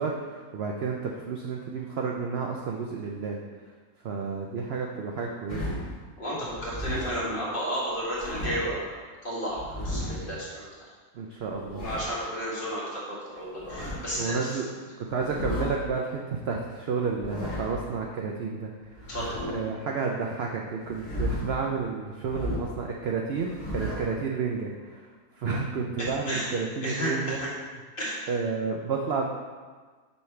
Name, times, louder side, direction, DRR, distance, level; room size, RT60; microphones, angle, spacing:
voice 1, 0.0-3.4 4.0-5.7 11.1-11.9 14.2-14.6 15.1-19.0 19.5-25.1 25.4-27.4 28.3-29.3, right 5 dB, 75° right, 0 dB, 0.5 m, -31 dB
sound 1, 5.5-6.0 6.5-7.3 7.9-8.8 9.5-10.4 11.4-12.2 13.4-14.2 15.1-15.8 17.0-17.9 18.9-19.8 20.8-21.7 22.2-22.8 23.3-24.2, left 1 dB, 55° left, 1.7 m, -35 dB
voice 2, 6.2-9.0 9.2-10.7 11.7-14.6 19.1-19.4 26.0-26.5 26.8-27.5 28.0-28.2, equal, 35° left, -7 dB, 1.7 m, -32 dB
5.5 x 3.2 x 5.7 m, 1.4 s
omnidirectional pair, 1.6 m